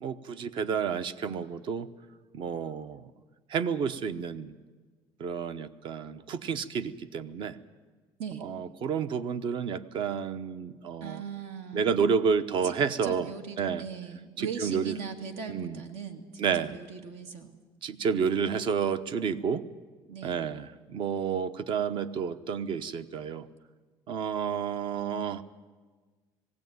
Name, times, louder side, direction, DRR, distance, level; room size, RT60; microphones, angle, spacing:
voice 1, 0.0-1.9 2.3-3.0 3.5-4.5 5.2-7.6 8.4-11.2 11.7-13.3 13.6-13.8 14.4-14.9 15.5-15.8 16.4-16.8 17.8-19.6 20.2-23.5 24.1-25.4, right 6 dB, 55° right, 13 dB, 0.9 m, -30 dB
voice 2, 11.0-12.0 12.6-12.7 13.0-17.5 20.1-20.4, right 6 dB, 80° right, 6 dB, 2.1 m, -39 dB
19.0 x 16.5 x 9.5 m, 1.4 s
cardioid pair, 135°, 10 cm